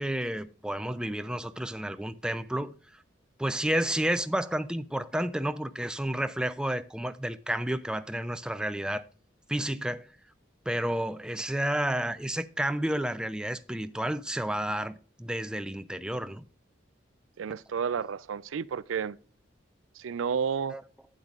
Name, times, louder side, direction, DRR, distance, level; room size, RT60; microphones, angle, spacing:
voice 1, 0.0-3.0 3.4-9.0 9.5-10.1 10.7-16.4 20.7-20.8, right 1 dB, 5° right, 0.4 m, -31 dB
voice 2, 17.4-19.2 20.0-20.8, right 6 dB, 80° right, 0.4 m, -31 dB
11.5 x 8.9 x 2.4 m
head